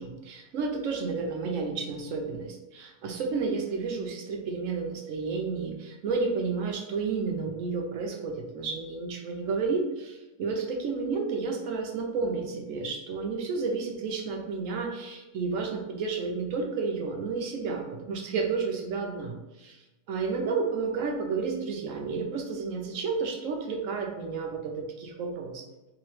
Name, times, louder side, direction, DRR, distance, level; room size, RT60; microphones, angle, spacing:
voice 1, 0.0-19.8 20.1-25.7, right 4 dB, 65° right, 2 dB, 1.0 m, -31 dB
3.5 x 3.0 x 3.2 m, 1.0 s
omnidirectional pair, 1.6 m